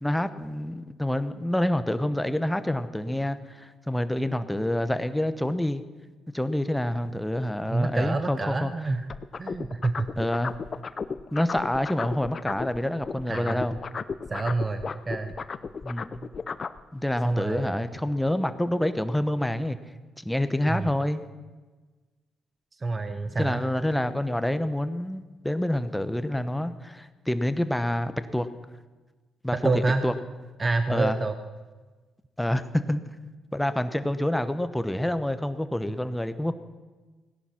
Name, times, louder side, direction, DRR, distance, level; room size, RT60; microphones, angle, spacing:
voice 1, 0.0-5.8 6.3-8.7 10.2-10.5 11.3-13.8 15.8-16.3 16.9-19.8 20.2-21.2 23.4-28.5 29.4-30.1 30.9-31.2 32.4-33.0 33.5-36.5, left 1 dB, 5° left, 11 dB, 0.9 m, -27 dB
voice 2, 7.7-9.1 9.4-10.1 13.3-13.7 14.3-15.3 17.2-17.8 20.7-20.9 22.8-23.6 29.5-30.0 30.6-31.4, right 3 dB, 30° right, 8 dB, 0.9 m, -27 dB
sound 1, 9.1-12.8 13.0-16.8, left 5 dB, 40° left, 0.6 m, -34 dB
17.0 x 11.0 x 5.9 m, 1.3 s
cardioid pair, 90°, 0 cm